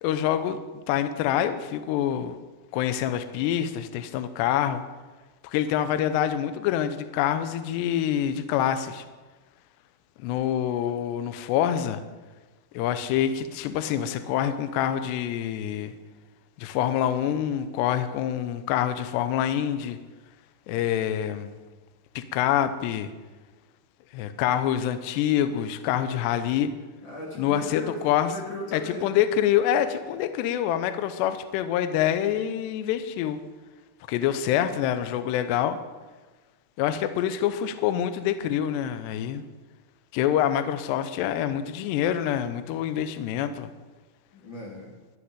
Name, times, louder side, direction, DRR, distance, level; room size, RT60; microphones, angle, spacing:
voice 1, 0.0-0.6 0.9-2.4 2.7-4.8 5.4-9.1 10.2-12.0 12.7-15.9 16.6-20.0 20.7-21.6 22.2-23.1 24.1-26.7 27.4-28.3 28.7-33.4 34.1-35.8 36.8-39.4 40.1-43.7, left 10 dB, 80° left, 11 dB, 2.5 m, -26 dB
voice 2, 27.0-29.1 44.3-44.9, left 1 dB, 40° left, -2 dB, 1.9 m, -37 dB
13.5 x 6.1 x 9.6 m, 1.3 s
omnidirectional pair, 5.6 m